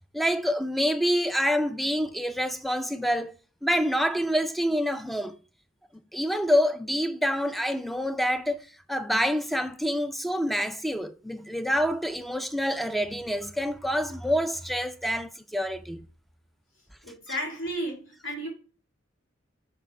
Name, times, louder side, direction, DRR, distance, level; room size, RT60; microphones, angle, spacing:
voice 1, 0.1-3.3 3.6-5.4 6.1-8.6 8.9-16.0 17.3-17.4, equal, ahead, 0.3 m, -27 dB
voice 2, 17.0-18.5, equal, 80° left, 2.3 m, -33 dB
6.7 x 3.3 x 4.5 m
head